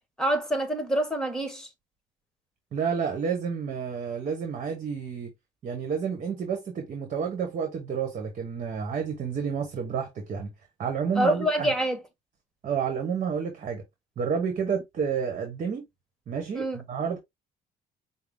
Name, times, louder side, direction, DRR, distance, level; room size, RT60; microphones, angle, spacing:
voice 1, 0.2-1.7 11.1-12.0 16.5-16.8, right 1 dB, 5° left, 1.4 m, -26 dB
voice 2, 2.7-5.3 5.6-10.5 10.8-11.7 12.6-13.8 14.2-15.8 16.3-17.2, right 6 dB, 50° right, 1.2 m, -30 dB
5.7 x 2.0 x 3.4 m
cardioid pair, 110°, 17 cm